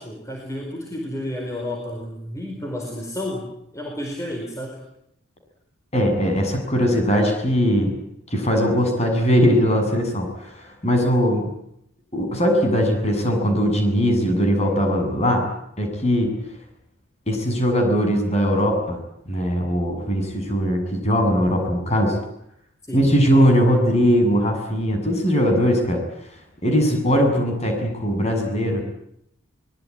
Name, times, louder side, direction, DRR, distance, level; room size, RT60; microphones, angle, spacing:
voice 1, 0.0-4.8 22.9-23.1, left 1 dB, 15° left, 0 dB, 4.7 m, -31 dB
voice 2, 5.9-8.0 8.3-11.5 12.1-15.4 15.8-16.3 17.3-19.0 19.3-22.1 22.9-26.0 26.6-28.8, equal, 30° left, 4 dB, 7.6 m, -20 dB
24.5 x 21.0 x 9.8 m, 0.75 s
head